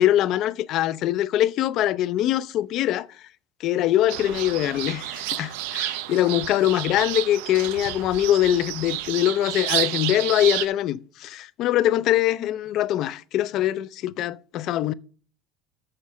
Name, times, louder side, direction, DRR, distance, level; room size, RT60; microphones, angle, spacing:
voice 1, 0.0-3.1 3.6-14.9, left 13 dB, 45° left, 0.4 m, -23 dB
sound 1, 4.1-10.7, right 16 dB, 80° right, 0.4 m, -30 dB
7.1 x 6.4 x 5.5 m
cardioid pair, 170°, 0 cm